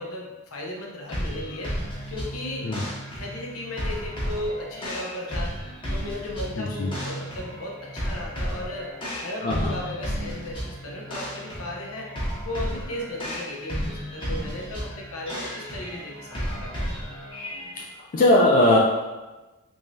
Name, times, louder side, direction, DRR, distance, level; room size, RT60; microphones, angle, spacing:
voice 1, 0.0-1.7 2.1-2.7 3.2-5.5 5.9-8.9 9.2-12.1 12.4-16.8, left 1 dB, 75° left, -2 dB, 0.7 m, -35 dB
sound 1, 1.1-17.8, equal, 25° left, 0.8 m, -33 dB
voice 2, 6.6-6.9 9.4-9.7 17.8-18.8, left 1 dB, 40° left, -2 dB, 0.3 m, -20 dB
3.4 x 3.1 x 2.7 m, 1.1 s
head